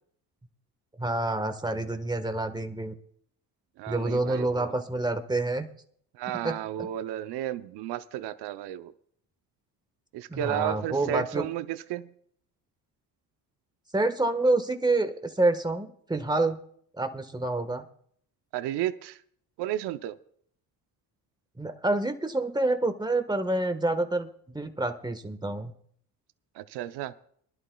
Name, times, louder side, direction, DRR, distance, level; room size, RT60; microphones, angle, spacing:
voice 1, 1.0-2.9 3.9-5.7 6.4-6.9 10.3-11.4 13.9-16.6 17.0-17.9 21.6-25.7, right 2 dB, 10° right, 8 dB, 1.3 m, -28 dB
voice 2, 3.8-4.7 6.1-8.9 10.1-12.1 18.5-19.2 19.6-20.2 26.5-27.1, right 12 dB, 65° right, 12 dB, 0.7 m, -33 dB
23.5 x 11.0 x 2.3 m, 0.62 s
supercardioid pair, 70°, 43 cm